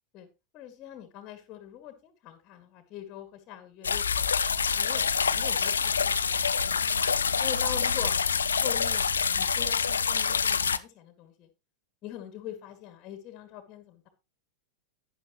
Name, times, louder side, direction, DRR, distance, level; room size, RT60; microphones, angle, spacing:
voice 1, 0.5-4.3 4.7-5.1 5.3-6.8 7.4-8.2 8.6-11.5 12.0-14.1, left 11 dB, 35° left, 9 dB, 2.0 m, -42 dB
sound 1, 3.8-10.8, left 6 dB, 70° left, 0.5 m, -26 dB
11.5 x 9.7 x 3.0 m, 0.26 s
figure-of-eight pair, 90°, 0 cm